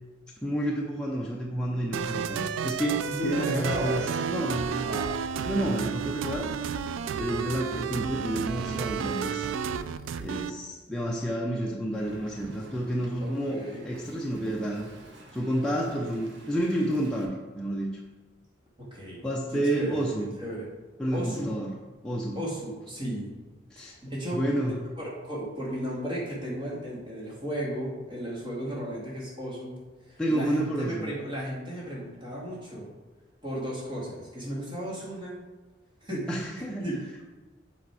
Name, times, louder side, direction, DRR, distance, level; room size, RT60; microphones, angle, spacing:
voice 1, 0.4-4.9 5.4-6.5 7.1-9.5 10.2-14.9 15.3-18.0 19.2-20.3 21.0-21.7 22.0-22.4 23.7-23.9 24.3-24.7 30.2-31.1 36.3-36.9, right 1 dB, 5° left, -4 dB, 0.6 m, -30 dB
sound 1, 1.9-10.5, right 7 dB, 90° right, 0.3 m, -31 dB
voice 2, 3.1-4.0 4.8-5.1 13.2-13.8 18.9-19.2 19.5-20.7 21.1-21.5 22.4-23.3 23.8-24.4 25.0-29.7 30.0-32.9 33.4-35.4 36.0-36.4 36.8-37.2, equal, 25° right, -6 dB, 2.1 m, -35 dB
Wind, 11.9-17.2, right 1 dB, 70° right, 1.2 m, -50 dB
7.7 x 4.2 x 4.8 m, 1.2 s
head